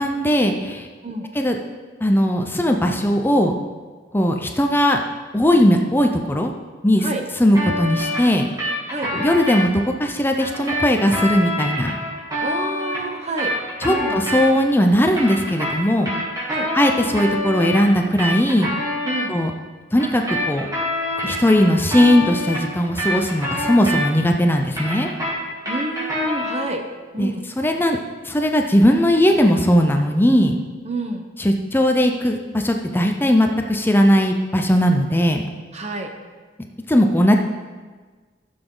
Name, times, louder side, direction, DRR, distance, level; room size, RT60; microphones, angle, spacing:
voice 1, 0.0-0.9 1.3-1.6 2.0-3.6 4.1-5.0 5.3-6.5 6.8-7.1 7.4-8.5 9.1-12.0 13.8-16.1 16.7-18.7 19.3-19.5 19.9-20.7 21.2-25.1 27.2-27.3 27.6-28.0 28.2-30.6 31.4-35.5 36.9-37.4, equal, 10° left, 4 dB, 0.6 m, -18 dB
sound 1, 7.5-9.6 10.4-14.7 15.0-19.2 20.0-24.3 24.6-26.7, left 1 dB, 20° right, 2.8 m, -26 dB
voice 2, 12.4-13.5 13.9-14.2 16.5-16.7 19.0-19.3 25.7-26.8 27.1-27.4 30.8-31.3 35.7-36.1, right 2 dB, 35° right, 5 dB, 1.0 m, -28 dB
14.5 x 7.0 x 3.9 m, 1.4 s
head